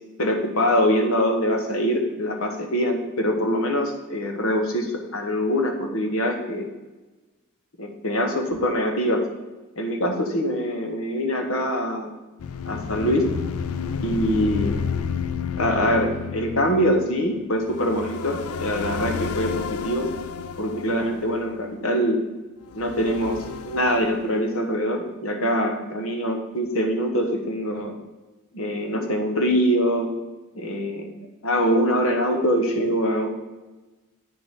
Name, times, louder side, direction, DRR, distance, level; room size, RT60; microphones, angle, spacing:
voice 1, 0.2-6.7 7.8-9.2 9.8-12.1 12.6-13.3 14.0-14.8 15.6-20.1 20.6-22.2 22.7-27.9 28.5-30.1 30.5-31.1 31.4-33.3, equal, 70° left, 4 dB, 1.3 m, -24 dB
sound 1, 12.4-22.0 22.6-24.7, left 6 dB, 85° left, 0.4 m, -31 dB
8.6 x 6.5 x 3.7 m, 1.1 s
head